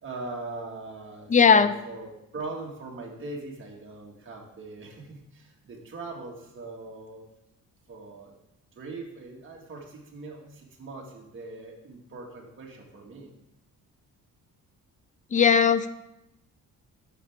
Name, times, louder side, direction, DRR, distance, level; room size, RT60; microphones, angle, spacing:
voice 1, 0.0-7.3 7.9-8.3 8.7-13.3, right 3 dB, 35° right, -2 dB, 1.9 m, -40 dB
voice 2, 1.3-1.7 15.3-15.9, left 6 dB, 25° left, 13 dB, 0.3 m, -18 dB
10.5 x 6.7 x 3.6 m, 0.86 s
cardioid pair, 140°, 34 cm